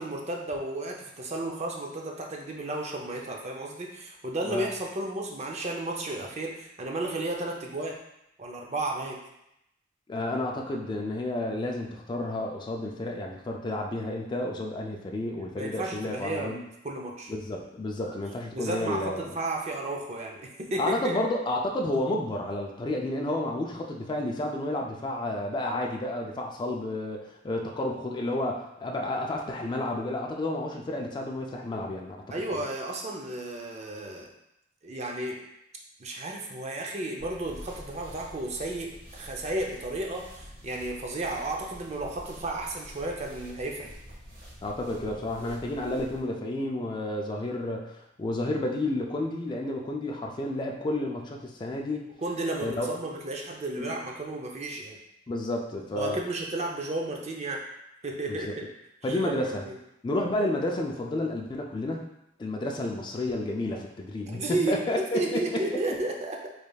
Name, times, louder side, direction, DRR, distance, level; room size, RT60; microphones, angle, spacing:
voice 1, 0.0-8.0 8.4-9.2 15.6-17.3 18.1-18.2 18.5-21.2 32.3-34.3 34.8-35.4 36.0-43.9 52.2-55.0 56.0-57.6 58.0-58.6 59.0-59.7 64.3-66.5, right 2 dB, 35° right, 0 dB, 0.5 m, -33 dB
voice 2, 10.1-16.6 17.3-19.3 20.8-32.2 32.5-32.6 44.6-52.0 52.6-52.9 53.8-54.0 55.3-56.2 58.3-58.5 59.0-59.6 60.0-62.1 62.4-65.6, left 1 dB, 25° left, 0 dB, 0.3 m, -31 dB
sound 1, 37.2-46.2, equal, 75° right, 1.4 m, -47 dB
4.9 x 3.2 x 2.3 m, 0.84 s
head